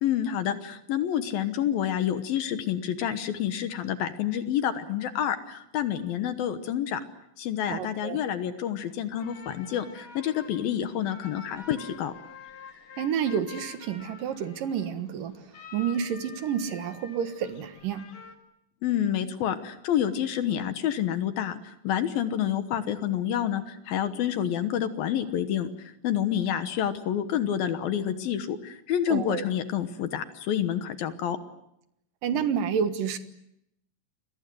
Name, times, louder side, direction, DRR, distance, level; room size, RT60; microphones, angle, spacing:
voice 1, 0.0-7.0 7.4-12.1 18.8-31.4, left 10 dB, 65° left, 10 dB, 2.6 m, -28 dB
voice 2, 7.7-8.2 13.0-15.4 15.7-18.1 29.1-29.4 32.2-33.2, right 7 dB, 60° right, 10 dB, 2.6 m, -29 dB
sound 1, 9.2-18.4, left 5 dB, 45° left, 3.0 m, -48 dB
29.5 x 23.0 x 7.8 m, 0.78 s
omnidirectional pair, 5.2 m